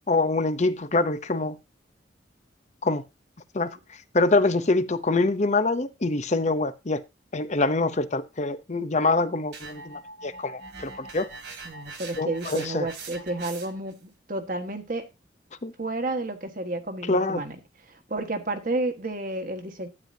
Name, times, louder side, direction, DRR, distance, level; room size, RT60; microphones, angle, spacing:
voice 1, 0.1-1.6 2.8-3.0 3.5-3.8 4.1-7.0 7.3-11.3 12.2-12.9 15.6-15.7 17.1-17.4, left 3 dB, 40° left, 0.8 m, -25 dB
sound 1, 9.5-13.9, right 3 dB, 70° right, 2.6 m, -42 dB
voice 2, 11.6-15.1 15.8-17.6 17.9-19.9, right 2 dB, 50° right, 1.5 m, -31 dB
12.0 x 9.0 x 2.8 m
head